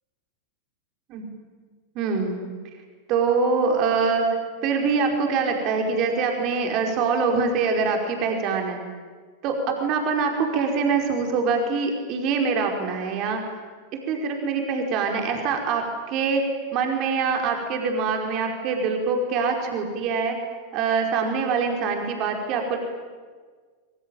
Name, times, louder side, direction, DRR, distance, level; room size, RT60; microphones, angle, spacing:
voice 1, 1.9-2.4 3.1-4.3 4.6-8.8 9.4-13.4 14.1-16.4 16.7-20.3 20.7-22.8, right 5 dB, 40° right, 3 dB, 5.0 m, -24 dB
26.0 x 24.0 x 9.1 m, 1.5 s
figure-of-eight pair, 90°, 0 cm